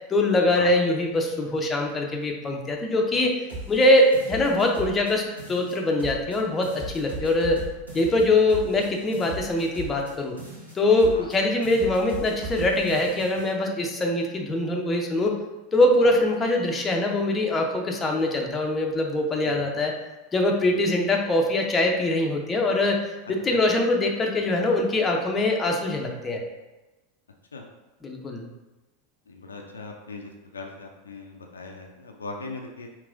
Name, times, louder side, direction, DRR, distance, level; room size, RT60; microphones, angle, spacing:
voice 1, 0.1-3.4 3.7-7.6 7.9-10.4 10.7-15.4 15.7-19.9 20.3-23.0 23.3-26.4 28.0-28.5, left 2 dB, 20° left, 1 dB, 0.6 m, -23 dB
sound 1, 3.5-5.1 5.4-6.4 6.6-10.1 10.4-11.4 11.6-13.5, right 2 dB, 85° right, 1.1 m, -38 dB
voice 2, 8.1-8.8 11.1-11.3 16.0-16.1 19.4-19.6 20.7-20.8 23.2-23.3 27.5-27.6 29.3-32.9, left 3 dB, 80° left, 1 dB, 0.4 m, -40 dB
4.8 x 2.9 x 2.5 m, 1.1 s
figure-of-eight pair, 85°, 0 cm